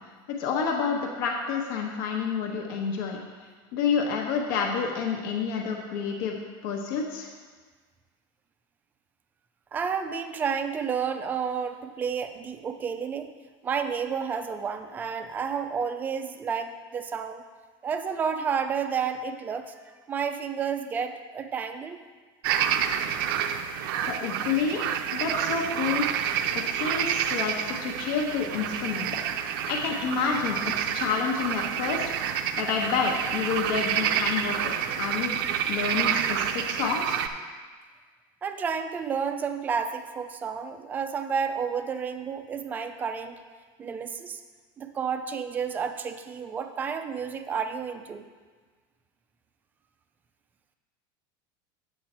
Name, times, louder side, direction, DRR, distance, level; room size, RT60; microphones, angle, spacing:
voice 1, 0.4-3.2 3.7-6.4 6.6-7.3 24.1-26.0 26.5-29.1 29.7-32.1 32.6-34.7 35.0-35.4 35.7-37.2, left 5 dB, 65° left, 0 dB, 1.2 m, -29 dB
voice 2, 9.7-13.3 13.6-17.4 17.8-22.0 38.4-43.4 43.8-44.4 44.8-48.2, right 6 dB, 15° right, 8 dB, 0.4 m, -31 dB
sound 1, 22.4-37.3, right 9 dB, 75° right, 0.6 m, -29 dB
8.5 x 8.1 x 4.4 m, 1.5 s
cardioid pair, 175°, 12 cm